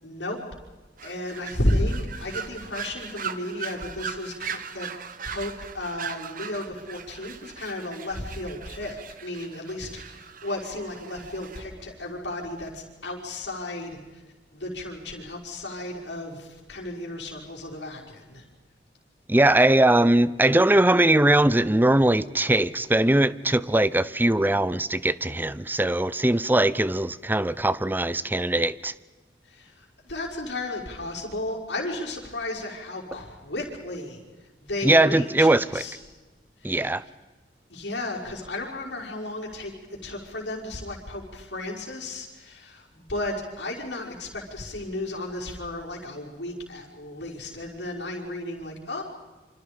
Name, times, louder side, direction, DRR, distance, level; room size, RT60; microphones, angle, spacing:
voice 1, 0.0-0.4 1.0-4.9 5.3-14.2 14.5-18.4 29.5-34.2 34.6-36.0 36.6-36.9 37.7-39.7 40.0-49.0, left 1 dB, 80° left, 5.7 m, -33 dB
sound 1, 1.0-11.6, right 7 dB, 50° right, 1.3 m, -39 dB
voice 2, 19.3-28.9 34.8-35.8 36.6-37.0, right 1 dB, 10° right, 0.7 m, -21 dB
28.0 x 27.5 x 5.3 m
head